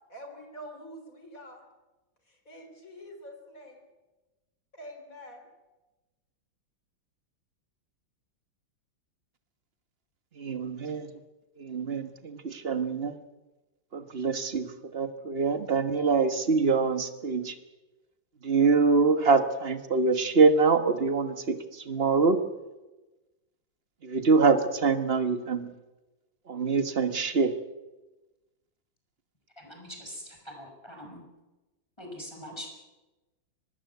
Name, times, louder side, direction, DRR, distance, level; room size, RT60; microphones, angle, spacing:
voice 1, 0.1-1.7 2.3-3.9 4.7-5.5, equal, 45° left, 4 dB, 4.0 m, -46 dB
voice 2, 10.4-11.1 11.6-13.1 13.9-17.5 18.4-21.6 21.9-22.4 24.0-25.7 26.5-27.5, right 4 dB, 35° right, 9 dB, 1.5 m, -24 dB
voice 3, 29.6-31.2 32.0-32.7, equal, 15° left, 2 dB, 5.7 m, -43 dB
23.5 x 19.5 x 8.2 m, 1.1 s
omnidirectional pair, 2.1 m